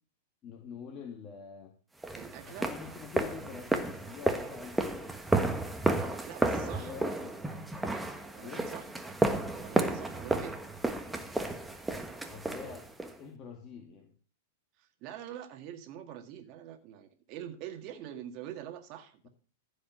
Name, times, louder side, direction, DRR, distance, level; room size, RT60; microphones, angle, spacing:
voice 1, 0.4-1.8 2.4-5.1 6.4-7.4 8.4-8.7 12.3-12.9 13.2-14.1, left 6 dB, 35° left, 0 dB, 2.2 m, -46 dB
sound 1, 2.0-13.2, right 2 dB, 5° right, 1.3 m, -32 dB
voice 2, 2.1-2.7 6.3-6.9 8.2-8.8 9.5-10.5 14.8-19.3, right 10 dB, 45° right, 5 dB, 1.9 m, -44 dB
14.5 x 5.3 x 6.0 m, 0.39 s
hypercardioid pair, 110°, 0 cm